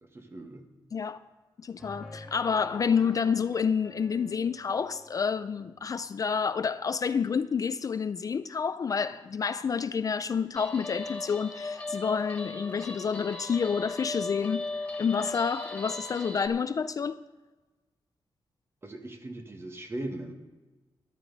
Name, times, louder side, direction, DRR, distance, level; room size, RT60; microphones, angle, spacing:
voice 1, 0.0-0.6 18.8-20.3, right 1 dB, 30° right, 1.4 m, -39 dB
voice 2, 1.6-17.2, left 6 dB, 40° left, 0.3 m, -29 dB
sound 1, 1.8-6.7, left 1 dB, 5° right, 1.7 m, -51 dB
Guitar, 10.6-16.5, left 2 dB, 15° left, 1.5 m, -37 dB
14.0 x 12.0 x 3.9 m
wide cardioid pair, 135°, 9 cm